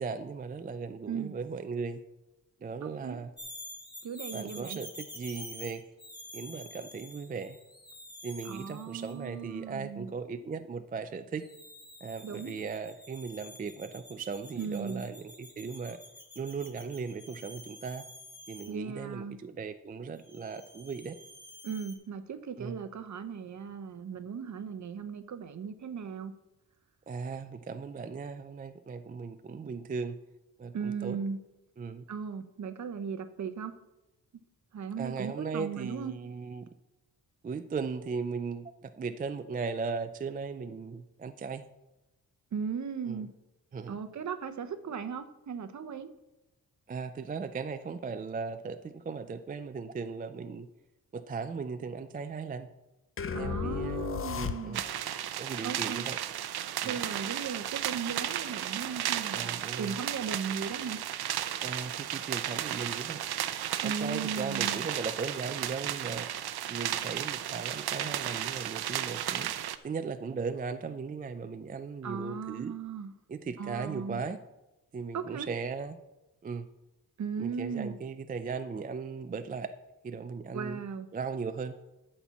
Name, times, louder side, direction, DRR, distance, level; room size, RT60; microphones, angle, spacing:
voice 1, 0.0-2.0 2.6-3.3 4.3-4.9 5.1-5.8 6.3-7.6 8.2-11.4 12.0-16.0 16.4-18.0 18.5-21.2 22.6-22.8 27.1-30.2 30.6-31.2 31.8-32.0 35.0-36.7 37.4-41.7 43.1-43.2 43.7-44.0 46.9-50.7 51.1-52.7 53.4-54.1 54.3-54.8 55.4-56.2 56.8-56.9 59.3-59.9 61.6-63.2 63.8-66.3 66.7-69.5 69.8-72.7 73.3-74.4 74.9-76.0 76.4-76.7 77.4-79.7 80.0-80.8 81.1-81.8, right 5 dB, 25° right, 10 dB, 0.4 m, -37 dB
voice 2, 2.8-3.2 4.0-4.8 8.4-10.1 12.2-12.5 14.6-15.0 18.7-19.4 21.6-26.3 30.7-31.4 32.1-33.7 34.7-36.1 42.5-43.3 43.9-46.1 53.3-54.8 55.6-56.0 56.8-61.0 63.8-64.8 72.0-73.1 73.6-74.2 75.1-75.5 77.2-77.9 80.5-81.1, right 6 dB, 50° right, 10 dB, 0.8 m, -37 dB
sound 1, 3.4-9.2 11.4-18.7 20.2-21.9, left 1 dB, 10° left, 1.6 m, -48 dB
sound 2, 53.2-55.1, left 6 dB, 35° left, 0.6 m, -34 dB
sound 3, 54.7-69.8, right 11 dB, 90° right, 0.6 m, -34 dB
13.0 x 4.4 x 6.9 m, 0.99 s
wide cardioid pair, 135°, 37 cm